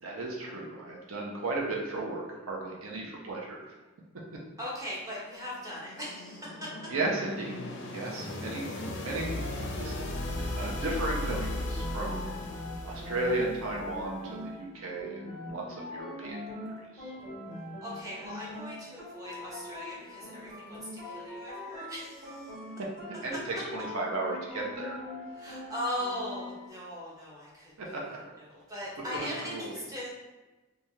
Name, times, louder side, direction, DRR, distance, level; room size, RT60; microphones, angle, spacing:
voice 1, 0.0-3.7 6.9-7.6 7.9-8.7 9.0-10.0 10.4-12.3 12.8-16.4 16.8-17.1 22.8-22.9 23.2-25.0 27.8-28.2 29.1-29.7, right 2 dB, 75° right, -2 dB, 0.5 m, -35 dB
voice 2, 4.6-6.6 8.1-8.3 17.8-22.5 25.3-27.7 28.5-30.2, left 1 dB, 15° right, -6 dB, 0.7 m, -39 dB
sound 1, 5.4-14.3, left 1 dB, 55° left, 0.4 m, -37 dB
sound 2, 11.1-26.7, left 1 dB, 40° right, 1.5 m, -42 dB
3.1 x 2.3 x 2.7 m, 1.2 s
head